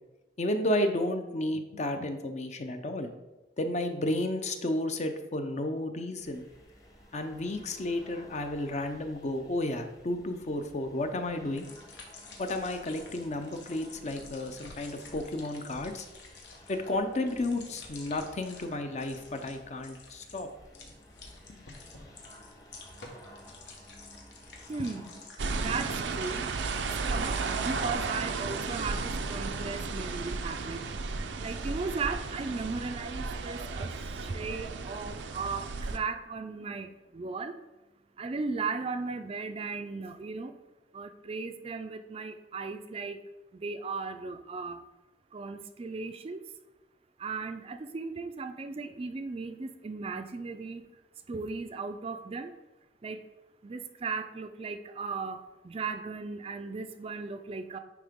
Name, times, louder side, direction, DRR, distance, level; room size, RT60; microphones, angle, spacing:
voice 1, 0.4-3.1 3.6-6.4 7.1-11.7 12.4-16.1 16.7-20.5, left 1 dB, 40° left, 7 dB, 0.6 m, -32 dB
sound 1, 6.2-25.3, equal, 20° left, 0.9 m, -54 dB
sound 2, 11.5-18.7 19.0-19.5 19.8-27.4, left 3 dB, 85° left, 1.2 m, -51 dB
voice 2, 24.7-25.1 25.5-26.4 26.9-30.8 31.4-37.6 38.2-40.5 40.9-43.2 43.5-44.8 45.3-46.4 47.2-50.8 51.3-52.5 53.0-53.2 53.6-57.8, right 4 dB, 35° right, 8 dB, 0.4 m, -36 dB
sound 3, 25.4-36.0, right 4 dB, 85° right, 0.5 m, -34 dB
9.4 x 3.8 x 3.6 m, 1.1 s
head